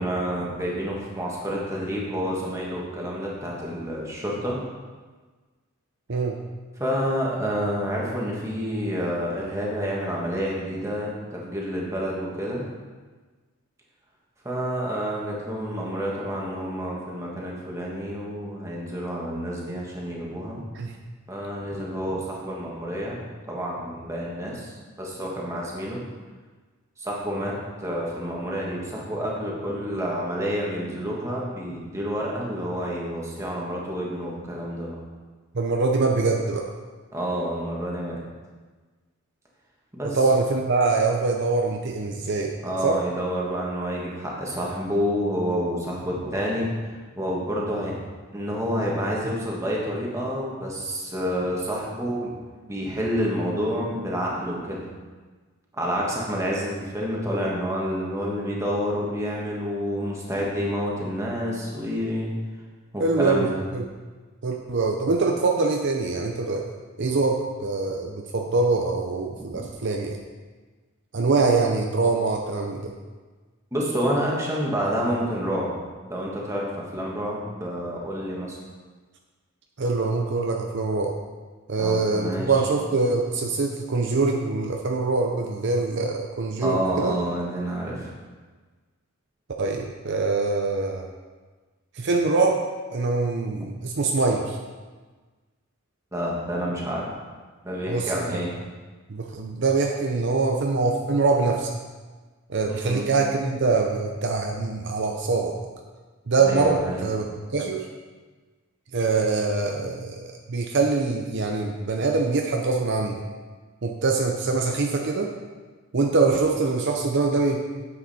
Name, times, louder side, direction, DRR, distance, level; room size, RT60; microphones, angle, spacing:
voice 1, 0.0-4.6 6.8-12.6 14.4-20.7 21.3-26.0 27.0-27.6 27.8-34.9 37.1-38.2 39.9-40.2 42.6-46.7 47.1-48.0 48.3-52.3 52.7-54.9 55.8-62.3 62.9-63.6 69.4-69.5 73.7-75.8 76.1-78.6 81.8-82.5 86.6-88.1 96.1-97.1 97.6-98.5 102.7-103.1 106.4-107.1, equal, 15° right, -4 dB, 1.7 m, -28 dB
voice 2, 35.5-36.7 40.0-42.5 42.8-43.0 63.0-63.9 64.4-66.7 67.0-70.2 71.1-72.9 79.8-81.2 81.7-87.2 89.6-91.1 91.9-92.6 92.9-94.6 97.9-98.2 99.1-101.8 102.5-105.6 106.3-107.9 108.9-113.2 113.8-115.3 115.9-117.6, right 3 dB, 55° right, 2 dB, 0.7 m, -24 dB
9.4 x 7.7 x 4.3 m, 1.4 s
head